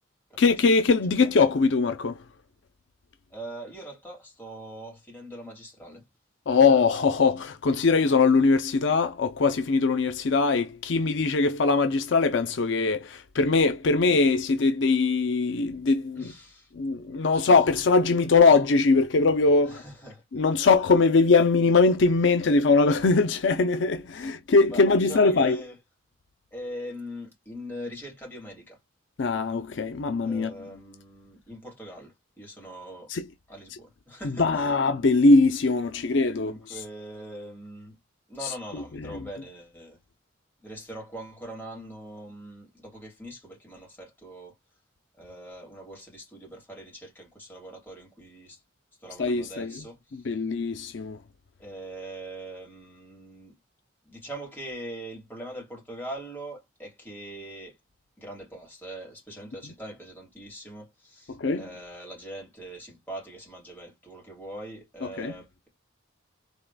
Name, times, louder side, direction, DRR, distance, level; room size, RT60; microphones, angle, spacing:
voice 1, 0.4-2.2 6.5-16.3 16.7-19.8 20.3-25.6 29.2-30.5 33.1-33.2 34.2-36.8 38.4-38.5 39.0-39.2 49.2-49.8 50.2-51.2 61.4-61.7 65.2-65.4, left 4 dB, 65° left, 0.5 m, -21 dB
voice 2, 1.1-1.4 3.3-6.0 6.5-7.2 16.1-16.7 17.3-17.5 19.6-20.4 24.1-24.3 24.7-25.8 26.5-28.8 30.2-33.1 33.5-34.8 36.3-38.0 38.3-40.0 40.6-44.6 45.2-48.6 49.0-50.4 51.6-53.5 54.0-57.8 58.2-65.7, right 1 dB, 10° left, 2.7 m, -42 dB
4.0 x 3.6 x 2.2 m
head